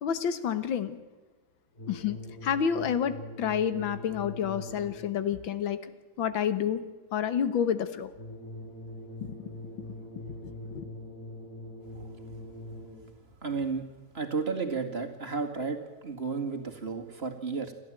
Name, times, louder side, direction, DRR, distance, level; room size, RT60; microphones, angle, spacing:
voice 1, 0.0-1.0 1.9-5.8 6.2-6.8 7.1-8.1 9.6-9.7 10.2-10.9, left 8 dB, 80° left, 12 dB, 2.1 m, -29 dB
sound 1, 1.7-5.2 8.1-13.2, left 1 dB, 30° left, 7.6 m, -43 dB
voice 2, 13.4-13.8 14.1-17.7, right 4 dB, 30° right, 4 dB, 2.3 m, -32 dB
29.5 x 12.5 x 9.0 m, 1.2 s
omnidirectional pair, 2.1 m